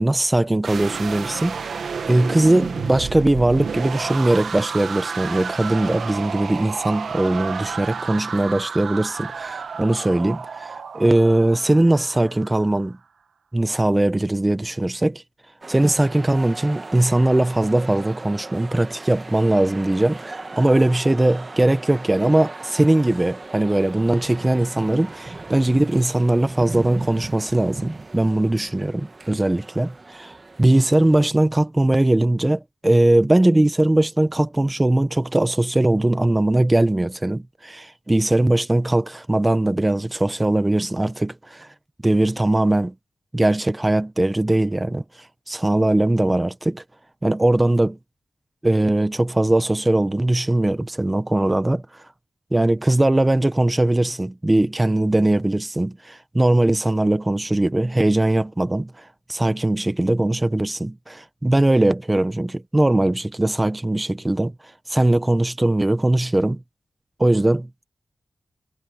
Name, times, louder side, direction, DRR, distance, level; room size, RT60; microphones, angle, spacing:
voice 1, 0.0-1.8 2.1-13.0 13.5-15.2 15.7-41.7 42.0-42.9 43.3-46.8 47.2-48.0 48.6-52.1 52.5-64.5 64.9-66.6 67.2-67.9, right 1 dB, 15° right, 0.9 m, -20 dB
sound 1, 0.6-12.7, right 6 dB, 85° right, 1.5 m, -31 dB
sound 2, 15.6-31.2, right 3 dB, 35° right, 1.3 m, -37 dB
wide cardioid pair, 115°, 0 cm